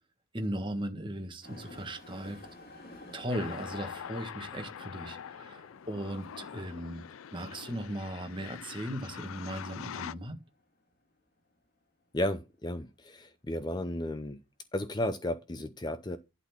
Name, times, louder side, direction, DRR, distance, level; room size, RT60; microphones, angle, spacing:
voice 1, 0.3-2.5 3.1-7.0 7.3-10.4, equal, 25° right, 1.6 m, -37 dB
sound 1, 1.4-11.0 11.6-11.7 12.5-12.6, left 1 dB, 50° left, 2.3 m, -54 dB
sound 2, 3.3-10.1, left 8 dB, 85° left, 0.4 m, -44 dB
voice 2, 12.1-14.4 14.7-16.2, left 1 dB, 20° left, 0.5 m, -33 dB
11.5 x 4.1 x 5.9 m
head